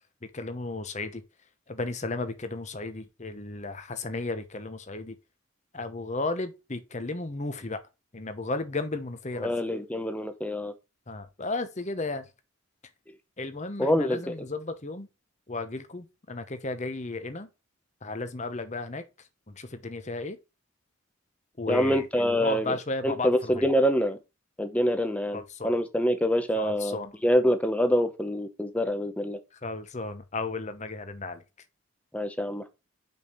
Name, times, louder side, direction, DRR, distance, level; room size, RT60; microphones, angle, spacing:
voice 1, 0.3-1.2 1.7-5.1 5.7-7.8 8.1-9.5 11.1-12.3 13.4-15.1 15.5-17.5 18.0-19.0 19.5-20.4 21.6-23.6 25.3-25.7 26.6-27.1 29.6-31.4, left 2 dB, 30° left, 0.9 m, -34 dB
voice 2, 9.4-10.7 13.8-14.3 21.7-22.8 23.0-24.2 24.6-29.4 32.1-32.7, equal, 5° left, 0.8 m, -26 dB
5.4 x 4.9 x 5.5 m
head